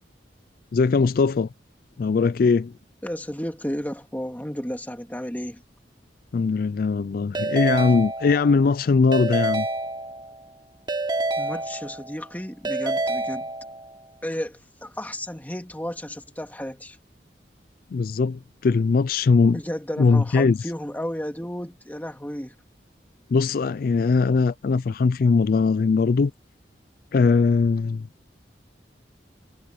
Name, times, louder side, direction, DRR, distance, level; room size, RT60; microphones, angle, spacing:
voice 1, 0.7-1.5 2.0-2.7 6.3-9.7 17.9-19.6 20.0-20.6 23.3-26.3 27.1-28.1, left 4 dB, 55° left, 0.4 m, -20 dB
voice 2, 3.0-5.6 11.4-13.5 14.2-17.0 19.5-22.5, equal, 10° left, 2.0 m, -33 dB
Keyboard (musical) / Ringtone, 7.3-8.7 9.1-10.4 10.9-12.2 12.6-14.0, right 2 dB, 25° right, 2.9 m, -28 dB
head